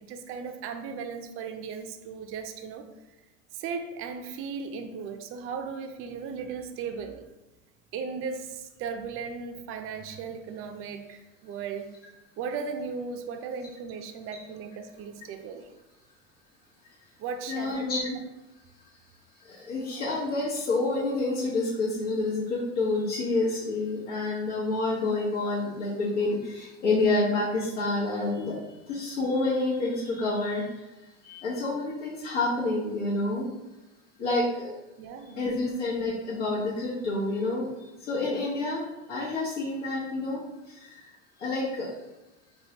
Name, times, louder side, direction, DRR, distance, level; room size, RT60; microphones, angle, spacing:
voice 1, 0.0-2.8 3.5-7.3 7.9-11.9 12.4-15.7 17.2-17.8 35.0-35.6, right 5 dB, 40° right, 6 dB, 0.4 m, -36 dB
voice 2, 17.5-18.2 18.8-18.9 19.4-30.9 31.2-33.5 34.2-34.8 35.2-40.4 40.7-41.1 41.4-41.9, left 2 dB, 90° left, -8 dB, 1.0 m, -28 dB
3.6 x 2.2 x 2.8 m, 1.0 s
supercardioid pair, 100°, 35 cm